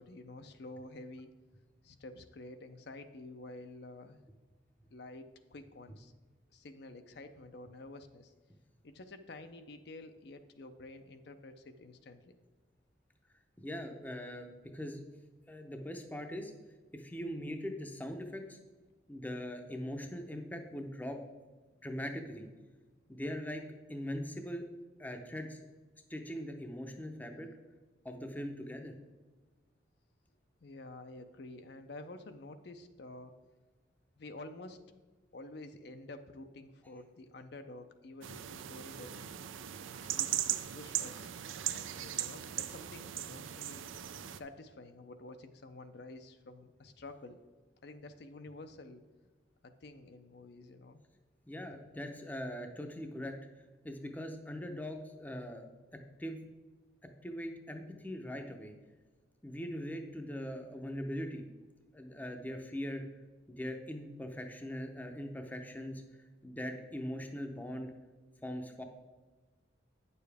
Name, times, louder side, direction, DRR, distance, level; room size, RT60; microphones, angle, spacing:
voice 1, 0.0-1.3 1.8-4.2 4.9-6.1 6.5-8.3 8.8-12.4 30.6-33.4 34.2-34.8 35.3-39.3 40.0-41.3 41.7-43.8 44.3-47.4 47.8-49.0 49.6-51.0, left 2 dB, 55° left, 8 dB, 0.5 m, -50 dB
voice 2, 13.6-14.5 14.7-15.0 15.5-16.5 16.9-18.6 19.1-21.2 21.8-22.5 23.1-23.6 23.9-24.7 25.0-25.6 26.1-27.5 28.0-28.9 51.5-53.4 53.8-55.7 56.2-56.4 57.2-58.7 59.4-61.4 61.9-63.0 63.5-66.0 66.4-67.9 68.4-68.8, equal, 10° left, 5 dB, 0.6 m, -41 dB
sound 1, 38.2-44.4, right 11 dB, 80° right, 0.5 m, -38 dB
9.2 x 6.9 x 3.4 m, 1.3 s
head